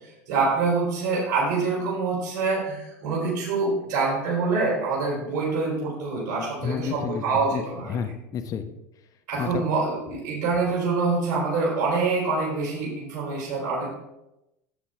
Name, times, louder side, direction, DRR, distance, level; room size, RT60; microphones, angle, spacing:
voice 1, 0.3-8.0 9.3-13.9, right 4 dB, 55° right, -4 dB, 4.1 m, -25 dB
voice 2, 6.6-8.6 9.4-9.6, left 7 dB, 40° left, 8 dB, 1.1 m, -31 dB
11.5 x 7.7 x 3.4 m, 0.89 s
hypercardioid pair, 80°, 9 cm